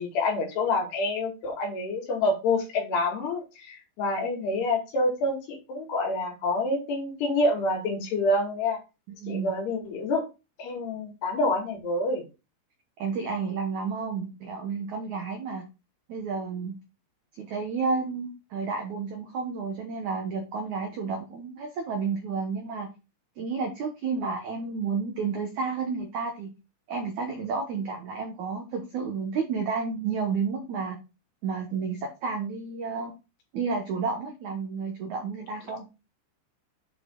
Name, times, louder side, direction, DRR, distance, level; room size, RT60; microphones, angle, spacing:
voice 1, 0.0-8.8 9.3-10.2 10.6-12.2, left 2 dB, 65° left, 0 dB, 4.2 m, -27 dB
voice 2, 9.1-9.5 13.0-15.6 16.1-16.7 17.4-22.9 23.4-26.5 26.9-31.0 31.4-33.1 33.5-35.9, right 5 dB, 90° right, 3 dB, 1.6 m, -31 dB
8.7 x 5.0 x 3.8 m, 0.28 s
omnidirectional pair, 5.2 m